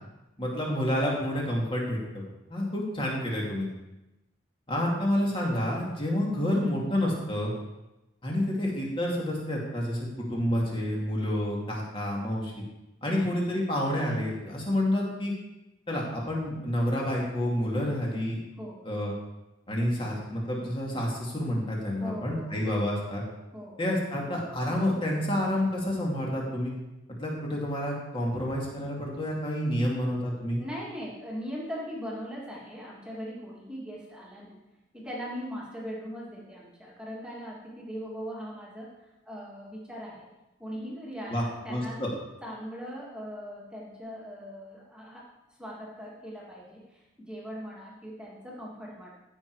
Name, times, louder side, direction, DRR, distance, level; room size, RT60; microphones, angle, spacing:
voice 1, 0.4-2.2 2.5-3.7 4.7-7.5 8.2-12.5 13.0-15.3 15.9-18.4 18.8-19.1 19.7-23.2 23.8-26.7 27.2-30.6 41.3-42.1, left 1 dB, 25° left, -2 dB, 2.4 m, -29 dB
voice 2, 22.0-22.7 23.5-23.8 30.6-34.6 34.9-38.9 39.3-40.3 40.6-42.0 42.4-45.3 45.6-49.1, equal, 5° right, -4 dB, 2.2 m, -40 dB
15.0 x 6.2 x 4.8 m, 0.99 s
head